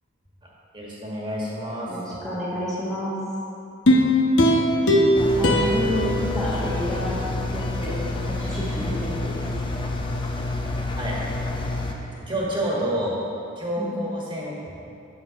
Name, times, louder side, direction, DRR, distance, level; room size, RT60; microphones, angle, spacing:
voice 1, 0.7-2.2 5.3-5.5 11.0-11.2 12.1-13.2 13.6-14.9, right 1 dB, 25° right, -5 dB, 1.7 m, -29 dB
voice 2, 1.9-3.1 5.1-9.7 13.8-14.0, equal, ahead, -9 dB, 1.3 m, -30 dB
sound 1, 3.9-7.2 7.6-7.7, left 1 dB, 60° left, 1.0 m, -20 dB
Engine, 5.2-11.9, left 2 dB, 25° left, 0.6 m, -28 dB
8.8 x 7.5 x 5.2 m, 2.7 s
head